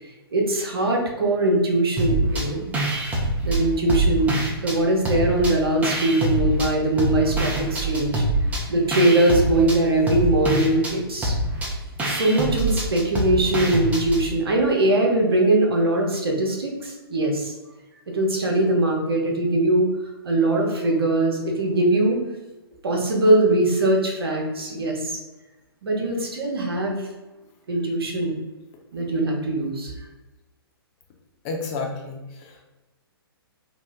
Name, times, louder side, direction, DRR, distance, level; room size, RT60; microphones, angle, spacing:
voice 1, 0.0-2.7 3.4-8.2 8.7-11.3 12.0-17.5 18.1-19.9 20.2-22.2 22.8-25.2 25.8-27.1 27.7-28.4 28.9-29.9, right 1 dB, 70° right, 0 dB, 0.9 m, -21 dB
sound 1, 2.0-2.5 2.7-4.8 5.0-6.7 7.0-14.2, right 1 dB, 10° right, 0.6 m, -24 dB
voice 2, 8.6-9.0 13.3-13.4 31.4-32.6, left 3 dB, 30° left, 0 dB, 0.7 m, -33 dB
2.9 x 2.1 x 3.5 m, 1.1 s
figure-of-eight pair, 125°, 13 cm